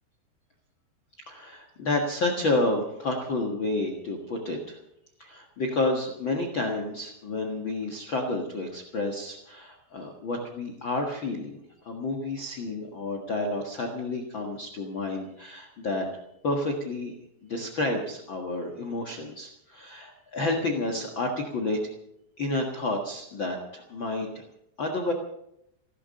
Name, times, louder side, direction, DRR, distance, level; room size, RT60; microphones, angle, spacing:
voice 1, 1.3-4.8 5.2-16.1 16.4-17.1 17.4-21.8 22.4-24.4 24.8-25.1, left 2 dB, 75° left, 2 dB, 1.1 m, -30 dB
16.0 x 13.5 x 6.6 m, 0.80 s
omnidirectional pair, 5.0 m